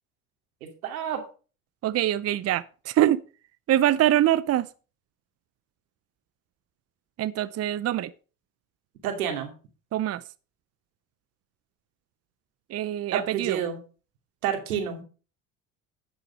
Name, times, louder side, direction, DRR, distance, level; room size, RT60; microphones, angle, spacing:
voice 1, 0.8-1.2 9.0-9.5 13.1-13.8 14.4-15.0, right 8 dB, 85° right, 2.6 m, -29 dB
voice 2, 1.8-3.2 3.7-4.7 7.2-8.1 9.9-10.2 12.7-13.6, right 13 dB, 35° right, 0.6 m, -24 dB
11.0 x 6.5 x 5.4 m
hypercardioid pair, 75°, 42 cm